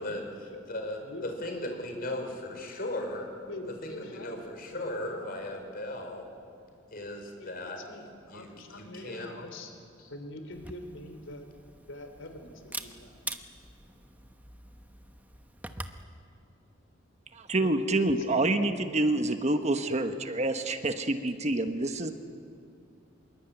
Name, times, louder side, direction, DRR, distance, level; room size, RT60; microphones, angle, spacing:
voice 1, 0.0-0.6 1.0-1.8 2.1-2.2 3.5-5.4 7.4-9.7 10.1-11.5 11.9-13.2 17.6-18.6, left 1 dB, 80° left, 7 dB, 3.5 m, -44 dB
voice 2, 0.7-3.3 3.8-6.3 6.9-7.8 8.3-9.3, left 1 dB, 50° left, 3 dB, 4.9 m, -37 dB
Camera, 10.5-16.0, right 2 dB, 10° right, 1.0 m, -44 dB
voice 3, 17.3-22.1, right 2 dB, 35° right, 7 dB, 1.3 m, -27 dB
25.5 x 22.5 x 9.2 m, 2.5 s
head